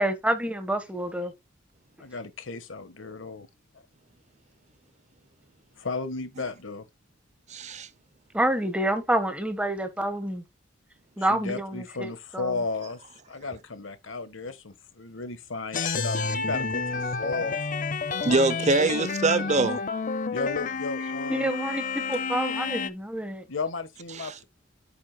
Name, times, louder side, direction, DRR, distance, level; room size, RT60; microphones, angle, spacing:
voice 1, 0.0-1.3 8.3-10.4 11.2-12.5 21.3-23.4, right 1 dB, 5° right, 1.4 m, -28 dB
voice 2, 2.0-3.5 5.8-6.8 11.2-17.6 18.6-18.9 20.3-21.5 23.5-24.4, left 3 dB, 80° left, 1.4 m, -34 dB
voice 3, 7.5-7.9 18.2-19.8 24.2-24.4, right 3 dB, 35° right, 0.7 m, -24 dB
sound 1, 15.7-22.9, left 4 dB, 45° left, 0.6 m, -30 dB
8.6 x 8.6 x 2.3 m
head